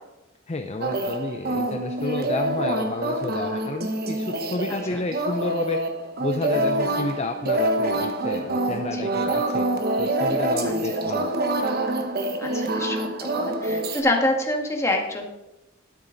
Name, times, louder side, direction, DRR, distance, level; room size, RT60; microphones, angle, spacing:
voice 1, 0.5-5.8 6.2-9.7 10.0-11.3, left 2 dB, 30° left, 6 dB, 0.6 m, -30 dB
sound 1, 0.8-14.0, right 1 dB, 50° right, 1.2 m, -26 dB
voice 2, 12.4-15.2, left 1 dB, 15° left, 1 dB, 1.8 m, -26 dB
12.5 x 8.9 x 4.0 m, 0.97 s
head